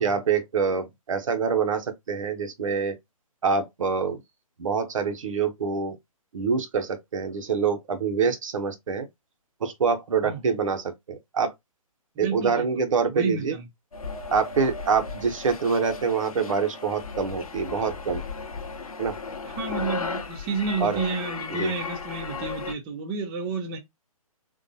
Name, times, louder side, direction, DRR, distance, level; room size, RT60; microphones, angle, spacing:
voice 1, 0.0-3.0 3.4-4.2 4.6-6.0 6.3-9.1 9.6-11.5 12.2-13.6 14.3-18.2 19.0-19.2 20.8-21.0 21.6-21.7, right 5 dB, 60° right, 0.9 m, -25 dB
voice 2, 10.2-10.5 12.2-12.8 13.1-13.7 19.4-23.8, right 4 dB, 20° right, 0.7 m, -31 dB
sound 1, 13.9-22.7, left 4 dB, 70° left, 0.9 m, -35 dB
3.8 x 2.5 x 2.7 m
figure-of-eight pair, 135°, 19 cm